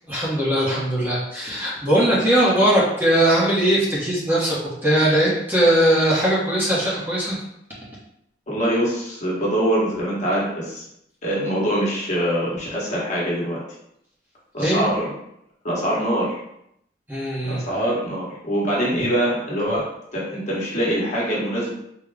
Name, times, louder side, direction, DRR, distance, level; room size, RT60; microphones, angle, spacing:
voice 1, 0.1-4.6 4.8-7.4 14.6-14.8 17.1-17.6, right 1 dB, 10° right, -7 dB, 0.8 m, -20 dB
voice 2, 8.5-10.8 11.2-13.6 14.5-15.1 15.6-16.4 17.5-21.7, equal, 40° left, -5 dB, 1.1 m, -24 dB
3.6 x 2.1 x 3.3 m, 0.76 s
head